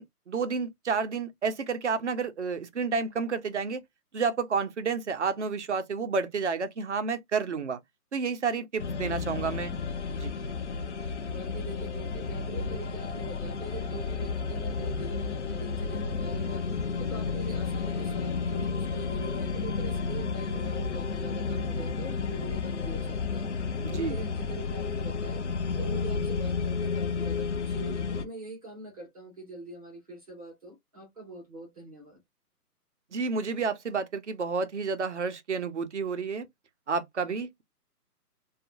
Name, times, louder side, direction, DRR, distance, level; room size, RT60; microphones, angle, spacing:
voice 1, 0.0-3.8 4.1-7.8 8.1-9.7 10.2-10.3 23.8-24.2 33.1-36.5 36.9-37.6, right 5 dB, 50° right, 0.5 m, -30 dB
sound 1, 8.8-28.3, left 4 dB, 50° left, 0.5 m, -32 dB
voice 2, 11.3-16.6 17.0-23.5 23.9-25.4 25.8-32.2, right 2 dB, 25° right, 0.9 m, -43 dB
2.7 x 2.3 x 2.4 m
hypercardioid pair, 165°, 47 cm